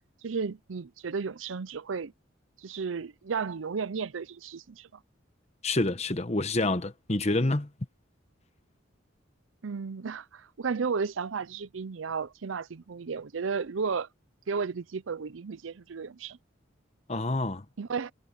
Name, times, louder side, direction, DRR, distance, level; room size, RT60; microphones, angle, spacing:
voice 1, 0.0-2.1 2.6-4.9 9.6-14.1 14.5-16.4 17.8-18.1, right 5 dB, 90° right, 0.6 m, -33 dB
voice 2, 5.6-7.7 17.1-17.6, left 2 dB, 35° left, 1.1 m, -27 dB
head